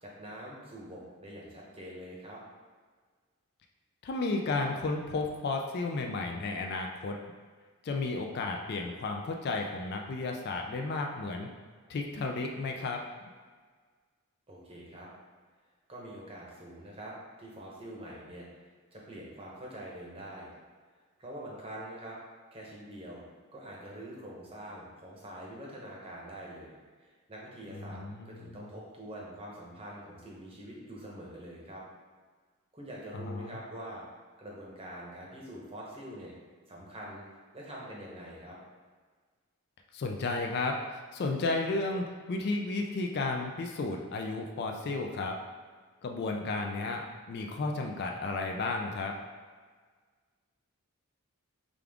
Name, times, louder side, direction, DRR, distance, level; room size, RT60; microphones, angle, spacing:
voice 1, 0.0-2.4 14.5-15.1 15.9-20.5 21.2-22.2 22.5-23.2 23.5-31.8 32.7-34.0 34.4-36.3 36.7-37.2 37.5-38.6, right 1 dB, 25° right, -4 dB, 0.8 m, -45 dB
voice 2, 4.0-7.2 7.8-11.5 11.9-13.0 27.7-28.6 33.3-33.6 39.9-45.4 46.0-49.1, left 3 dB, 45° left, 2 dB, 0.3 m, -33 dB
5.1 x 2.3 x 3.5 m, 1.5 s
head